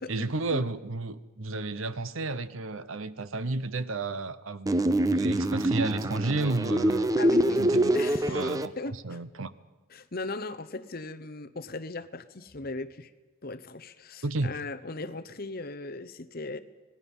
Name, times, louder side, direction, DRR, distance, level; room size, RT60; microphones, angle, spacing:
voice 1, 0.1-7.1 7.6-7.9 8.3-9.5 14.2-14.5, right 2 dB, 70° right, 14 dB, 0.9 m, -32 dB
sound 1, 4.7-8.7, right 1 dB, 15° right, 0.6 m, -25 dB
voice 2, 7.2-7.7 7.9-9.2 9.9-13.1 13.4-16.6, left 2 dB, 45° left, 13 dB, 0.9 m, -38 dB
26.0 x 19.5 x 5.5 m, 1.3 s
head